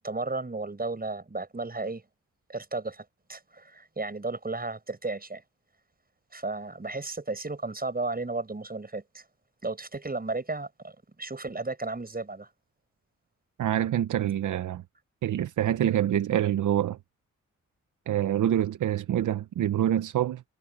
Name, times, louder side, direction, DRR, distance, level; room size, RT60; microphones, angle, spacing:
voice 1, 0.0-2.0 2.5-5.4 6.3-9.2 9.6-12.5, right 3 dB, 30° right, 7.5 m, -34 dB
voice 2, 13.6-14.8 15.2-17.0 18.1-20.4, right 11 dB, 85° right, 0.8 m, -26 dB
cardioid pair, 55°, 30 cm